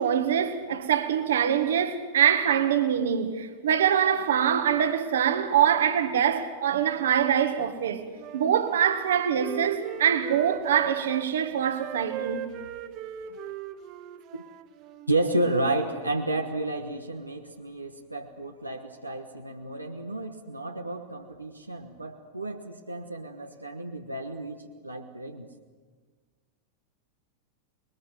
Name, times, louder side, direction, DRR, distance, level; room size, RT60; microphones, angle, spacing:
voice 1, 0.0-8.1 8.3-12.5, right 9 dB, 60° right, 1.8 m, -24 dB
Wind instrument woodwind instrument, 8.2-11.3 11.7-15.2, right 10 dB, 40° right, 1.5 m, -39 dB
voice 2, 15.1-25.5, right 2 dB, 85° right, 1.4 m, -31 dB
25.5 x 21.5 x 7.8 m
figure-of-eight pair, 90°, 0 cm